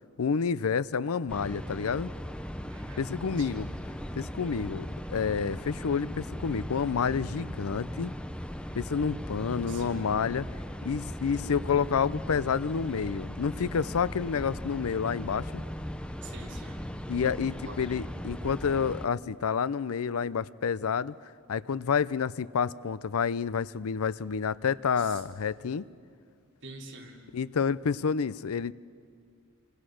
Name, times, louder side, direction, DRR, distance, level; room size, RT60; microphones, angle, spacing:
voice 1, 0.2-2.1 3.0-3.7 4.1-8.1 8.7-10.5 10.8-15.6 17.1-21.1 21.5-25.9 27.3-28.7, left 6 dB, 75° left, 19 dB, 0.5 m, -29 dB
sound 1, 1.3-19.1, equal, 5° left, 0.7 m, -38 dB
voice 2, 2.7-3.6 9.3-10.1 16.2-16.9 17.6-17.8 25.0-25.2 25.6-25.7 26.6-27.3, right 3 dB, 55° right, -1 dB, 3.8 m, -47 dB
27.5 x 25.5 x 6.4 m, 2.3 s
head